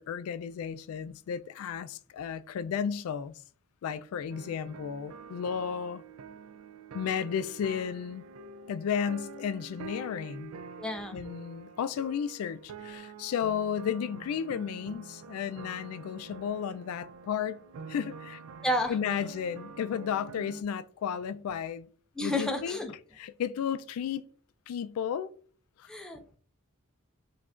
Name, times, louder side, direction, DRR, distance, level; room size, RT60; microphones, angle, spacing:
voice 1, 0.0-3.3 3.8-6.0 6.9-8.2 8.7-10.5 11.1-17.6 17.9-18.4 18.9-21.9 22.2-22.8 23.2-24.2 24.7-25.3 25.8-25.9, left 8 dB, 90° left, 0.3 m, -33 dB
sound 1, 4.3-20.6, right 4 dB, 85° right, 0.3 m, -47 dB
voice 2, 10.8-11.2 18.6-19.0 22.2-22.9 25.9-26.2, left 1 dB, 5° left, 0.3 m, -30 dB
4.9 x 2.3 x 2.4 m
head